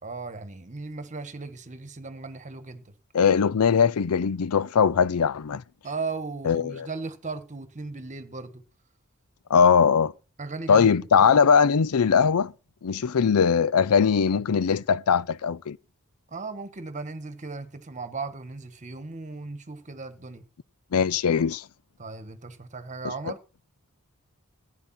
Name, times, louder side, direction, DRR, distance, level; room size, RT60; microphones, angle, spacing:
voice 1, 0.0-2.9 5.8-8.6 10.4-11.1 16.3-20.4 22.0-23.4, right 3 dB, 35° right, 1.5 m, -36 dB
voice 2, 3.1-5.6 6.4-6.9 9.5-10.1 10.7-12.5 12.8-15.8 20.9-21.6, left 6 dB, 75° left, 0.5 m, -20 dB
15.5 x 9.5 x 4.4 m
head